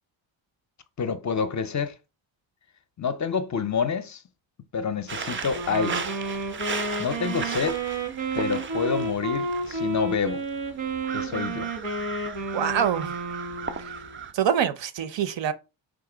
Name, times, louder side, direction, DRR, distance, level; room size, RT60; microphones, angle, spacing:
voice 1, 1.0-1.9 3.0-4.2 4.7-6.1 7.0-7.8 8.3-10.4 11.1-11.7, left 6 dB, 40° left, 0.5 m, -28 dB
sound 1, 5.1-14.3, right 5 dB, 30° right, 0.4 m, -36 dB
Wind instrument woodwind instrument, 5.5-14.2, right 3 dB, 90° right, 1.5 m, -31 dB
voice 2, 12.5-13.1 14.3-15.5, right 8 dB, 65° right, 0.7 m, -25 dB
3.8 x 2.9 x 4.9 m
wide cardioid pair, 140°, 47 cm